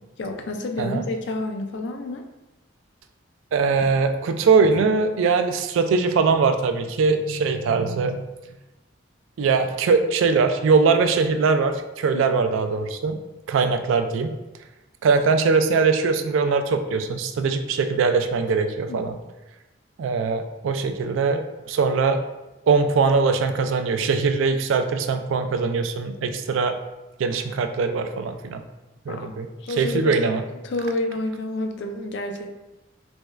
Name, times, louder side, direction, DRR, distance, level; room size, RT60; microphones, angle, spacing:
voice 1, 0.2-2.2 12.1-12.2 18.9-19.1 29.1-29.3 29.6-30.1 30.6-32.5, left 2 dB, 60° left, 4 dB, 0.4 m, -29 dB
voice 2, 3.5-8.2 9.4-13.2 13.5-14.3 15.0-19.1 20.0-22.2 22.7-26.8 27.2-28.6 29.1-29.5 29.8-30.4, right 4 dB, 80° right, 8 dB, 0.3 m, -21 dB
3.5 x 2.2 x 3.1 m, 1.0 s
head